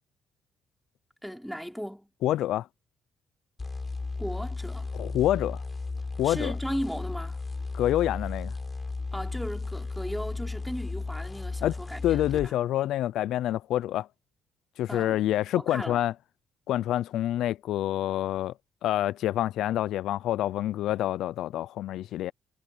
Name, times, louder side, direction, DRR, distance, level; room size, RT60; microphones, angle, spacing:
voice 1, 1.2-2.1 4.2-4.9 6.2-7.4 9.1-12.5 14.9-15.2 15.5-16.0, equal, ahead, 3.9 m, -36 dB
voice 2, 2.2-2.7 4.9-5.6 6.2-6.5 7.7-8.5 11.6-11.7 12.0-14.1 14.8-16.1 16.7-18.5 18.8-22.3, left 13 dB, 85° left, 0.4 m, -27 dB
sound 1, 3.6-12.5, left 3 dB, 25° left, 3.5 m, -34 dB
cardioid pair, 90°, 0 cm